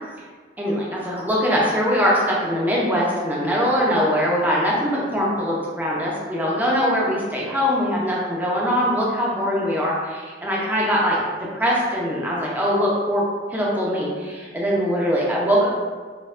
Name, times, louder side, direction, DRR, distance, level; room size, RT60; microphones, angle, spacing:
voice 1, 0.6-11.2 11.5-13.2 13.5-15.7, equal, 10° right, -5 dB, 0.6 m, -22 dB
4.1 x 2.2 x 2.5 m, 1.5 s
head